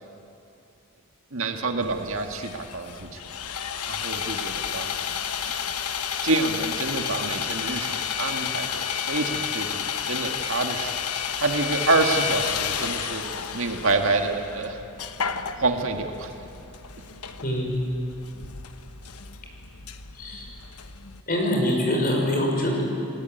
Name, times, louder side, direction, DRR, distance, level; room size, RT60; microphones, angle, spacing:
voice 1, 1.3-3.2 3.9-4.9 6.2-10.9 11.4-13.2 13.5-14.8 15.6-16.3, right 3 dB, 60° right, 4 dB, 1.9 m, -27 dB
Sawing, 1.8-21.2, left 7 dB, 90° left, 1.2 m, -31 dB
voice 2, 17.4-17.9 20.1-20.5 21.3-22.9, left 1 dB, 40° left, 0 dB, 5.6 m, -24 dB
29.0 x 19.0 x 9.3 m, 2.6 s
head